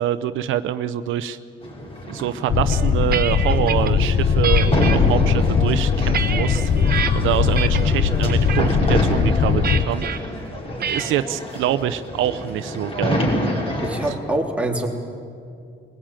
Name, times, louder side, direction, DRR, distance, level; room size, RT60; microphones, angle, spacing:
voice 1, 0.0-1.4 2.1-6.7 7.1-10.3 10.9-13.3, right 11 dB, 85° right, 11 dB, 0.7 m, -25 dB
sound 1, 1.6-14.1, equal, 30° left, 5.1 m, -27 dB
sound 2, 2.5-9.9, left 7 dB, 50° left, 0.9 m, -20 dB
sound 3, 2.7-3.9 4.4-5.0 5.6-7.1 7.6-8.0 8.3-8.7 9.6-10.2 10.8-11.2, right 8 dB, 50° right, 1.2 m, -27 dB
voice 2, 13.8-14.9, right 1 dB, 5° right, 0 dB, 3.4 m, -25 dB
22.0 x 17.5 x 9.0 m, 2.3 s
cardioid pair, 90°, 20 cm